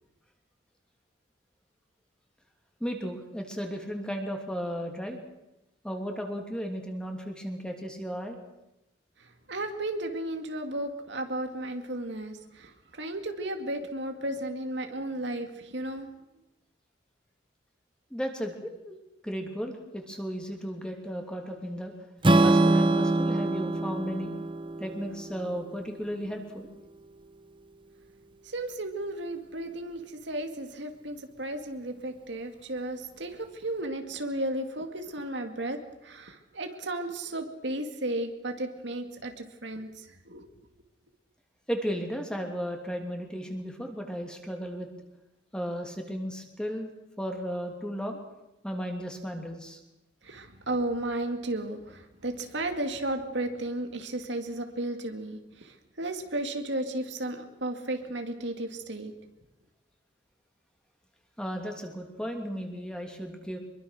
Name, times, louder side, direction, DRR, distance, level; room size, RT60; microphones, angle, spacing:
voice 1, 2.8-5.2 5.8-8.4 18.1-21.9 22.4-24.3 24.8-26.7 41.7-44.9 45.5-46.9 47.2-48.2 48.6-49.8 61.4-63.6, equal, 5° left, 3 dB, 2.8 m, -35 dB
voice 2, 9.2-16.1 28.4-40.4 50.2-59.1, right 1 dB, 65° right, 6 dB, 2.3 m, -34 dB
Strum, 22.2-26.4, right 2 dB, 25° right, 0.8 m, -25 dB
25.0 x 22.5 x 6.5 m, 0.93 s
head